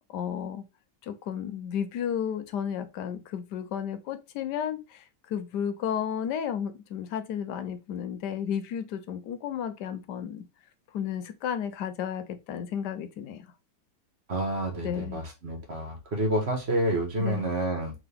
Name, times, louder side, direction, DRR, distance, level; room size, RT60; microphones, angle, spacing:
voice 1, 0.1-0.6 1.0-10.4 10.9-13.5 14.8-15.2 17.2-17.4, left 8 dB, 80° left, 1.3 m, -33 dB
voice 2, 14.3-17.9, right 1 dB, 40° right, 1.5 m, -29 dB
3.7 x 3.6 x 3.4 m
omnidirectional pair, 1.8 m